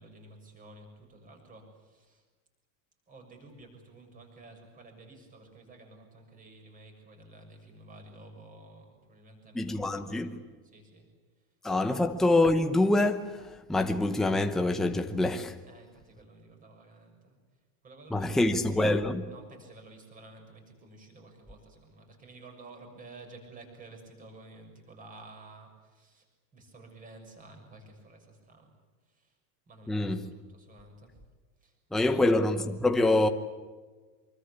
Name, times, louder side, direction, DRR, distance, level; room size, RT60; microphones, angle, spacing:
voice 1, 0.0-2.2 3.1-10.3 10.6-11.1 15.7-17.4 17.8-18.9 19.3-26.3 26.5-28.7 29.1-29.4 29.7-30.2 30.5-31.1 31.6-32.2, right 2 dB, 20° right, 6.7 m, -52 dB
voice 2, 9.5-10.4 11.6-15.6 18.1-19.3 29.9-30.3 31.9-33.3, left 2 dB, ahead, 0.8 m, -26 dB
26.0 x 24.0 x 8.4 m
supercardioid pair, 175°, 43 cm